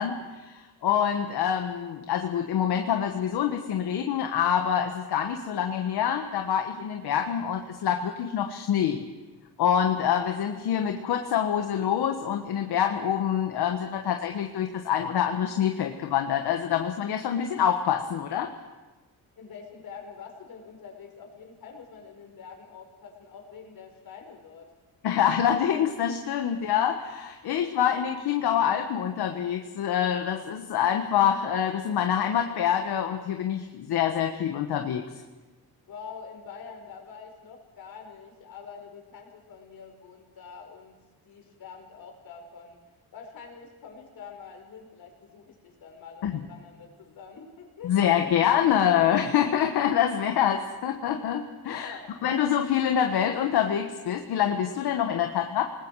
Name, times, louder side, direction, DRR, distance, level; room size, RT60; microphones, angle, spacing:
voice 1, 0.0-9.0 9.6-18.5 25.0-35.0 46.2-46.3 47.8-55.6, left 9 dB, 80° left, 4 dB, 1.4 m, -26 dB
voice 2, 19.4-24.7 35.9-41.0 41.2-42.8 43.1-47.9 48.2-48.4 51.6-52.1, left 6 dB, 65° left, 2 dB, 5.0 m, -45 dB
29.0 x 20.0 x 4.8 m, 1.2 s
cardioid pair, 130°, 38 cm